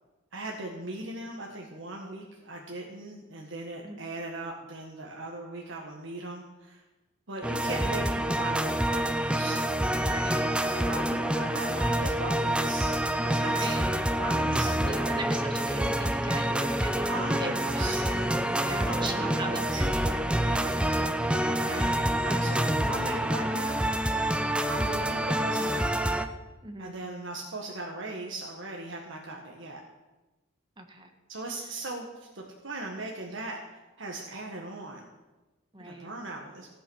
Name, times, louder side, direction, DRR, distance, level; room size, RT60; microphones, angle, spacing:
voice 1, 0.3-6.8 7.3-9.6 10.7-13.9 14.1-15.1 17.0-19.9 21.6-23.8 24.7-26.0 26.8-29.8 31.3-33.6 34.0-35.1 35.8-36.7, right 2 dB, 65° right, 0 dB, 1.7 m, -39 dB
sound 1, 7.4-26.3, right 1 dB, 5° right, 0.6 m, -27 dB
voice 2, 10.0-10.5 13.4-13.9 14.5-18.0 18.6-21.8 26.6-27.0 30.8-31.1 35.7-36.1, right 2 dB, 25° right, 4 dB, 1.6 m, -40 dB
16.0 x 8.9 x 6.4 m, 1.1 s
head